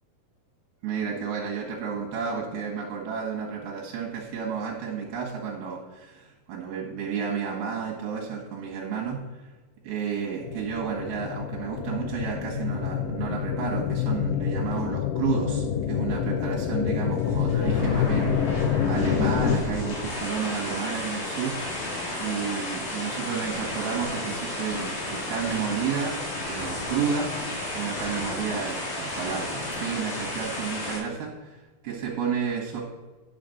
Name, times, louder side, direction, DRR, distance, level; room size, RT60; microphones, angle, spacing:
voice 1, 0.8-9.2 9.8-21.8 22.2-27.3 27.7-32.8, right 6 dB, 75° right, -2 dB, 3.2 m, -31 dB
sound 1, 10.4-19.6, left 8 dB, 85° left, 2.0 m, -27 dB
sound 2, 17.1-31.0, left 1 dB, 55° left, 4.2 m, -32 dB
10.0 x 5.1 x 6.6 m, 1.2 s
omnidirectional pair, 4.6 m